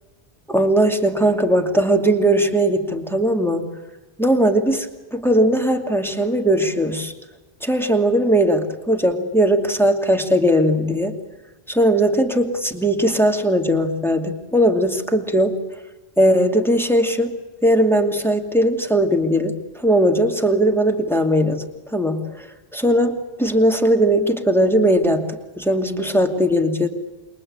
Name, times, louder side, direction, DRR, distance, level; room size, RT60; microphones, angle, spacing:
voice 1, 0.5-3.7 4.2-7.1 7.6-11.2 11.7-15.6 16.2-17.4 17.6-22.5 22.7-26.9, right 1 dB, ahead, 3 dB, 2.6 m, -19 dB
27.5 x 23.5 x 8.8 m, 1.1 s
omnidirectional pair, 1.1 m